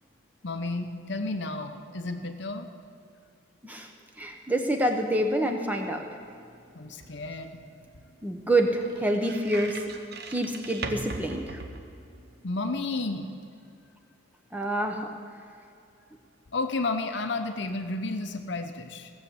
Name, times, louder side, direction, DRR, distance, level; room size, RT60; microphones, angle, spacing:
voice 1, 0.4-2.7 6.7-7.6 12.4-13.3 16.5-19.1, left 2 dB, 55° left, 7 dB, 0.8 m, -32 dB
voice 2, 4.2-6.1 8.2-9.8 10.3-11.6 14.5-15.1, right 1 dB, 10° right, 3 dB, 0.9 m, -27 dB
sound 1, 6.2-12.4, right 3 dB, 50° right, 1.0 m, -41 dB
17.0 x 7.3 x 8.1 m, 2.5 s
head